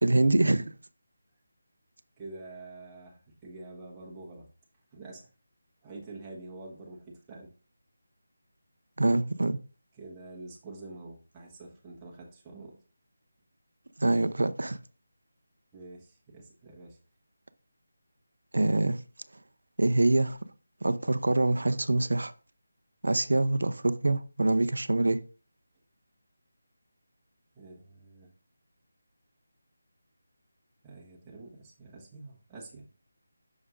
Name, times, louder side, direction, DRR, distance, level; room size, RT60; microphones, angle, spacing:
voice 1, 0.0-0.7 9.0-9.6 14.0-14.8 18.5-19.0 19.8-20.4 20.8-22.3 23.0-25.2, right 2 dB, 85° right, 0.6 m, -25 dB
voice 2, 2.2-4.5 4.9-5.3 5.8-7.5 9.9-12.8 15.7-17.0 27.5-28.3 30.8-33.0, right 2 dB, 10° right, 1.3 m, -46 dB
7.1 x 6.2 x 2.5 m
figure-of-eight pair, 170°, 0 cm